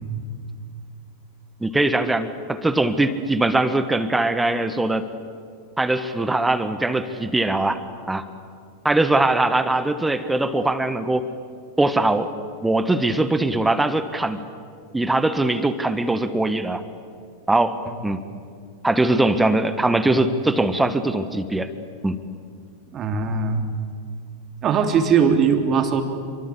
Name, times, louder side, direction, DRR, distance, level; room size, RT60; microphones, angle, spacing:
voice 1, 1.6-5.1 5.8-8.3 8.8-11.3 11.8-12.3 12.6-14.4 14.9-16.8 17.5-17.8 18.0-18.2 18.8-21.7 22.0-22.2, right 2 dB, 5° right, 12 dB, 1.4 m, -21 dB
voice 2, 22.9-23.7 24.6-26.0, right 6 dB, 30° right, 6 dB, 3.0 m, -20 dB
28.5 x 24.0 x 8.4 m, 2.3 s
figure-of-eight pair, 90°, 0 cm